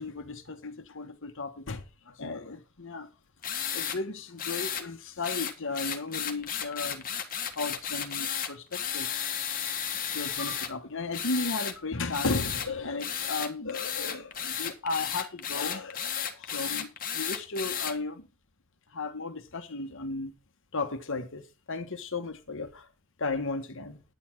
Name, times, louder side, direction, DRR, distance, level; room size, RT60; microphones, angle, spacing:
voice 1, 0.0-3.1 3.7-7.0 7.5-9.2 9.9-18.3 18.9-20.3 20.7-22.9 23.2-24.0, left 3 dB, 60° left, 1.3 m, -35 dB
sound 1, 3.4-4.0 4.4-4.8 5.2-10.7 11.1-11.7 12.1-12.7 13.0-17.9, left 8 dB, 40° left, 1.5 m, -33 dB
10.0 x 9.5 x 4.6 m
head